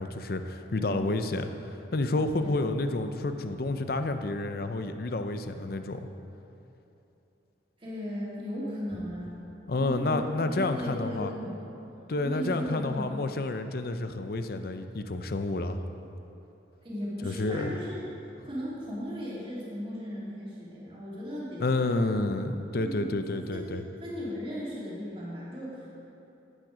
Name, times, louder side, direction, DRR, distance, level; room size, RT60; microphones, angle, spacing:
voice 1, 0.0-6.0 9.7-11.3 12.1-15.8 17.2-17.8 21.6-23.8, left 2 dB, 55° left, 8 dB, 0.6 m, -30 dB
voice 2, 0.7-1.1 2.4-2.7 7.8-9.4 9.8-10.3 10.5-11.6 12.2-13.3 16.8-18.0 18.4-22.1 22.8-23.7 24.0-25.9, equal, 30° right, -7 dB, 2.9 m, -36 dB
12.0 x 9.0 x 5.0 m, 3.0 s
head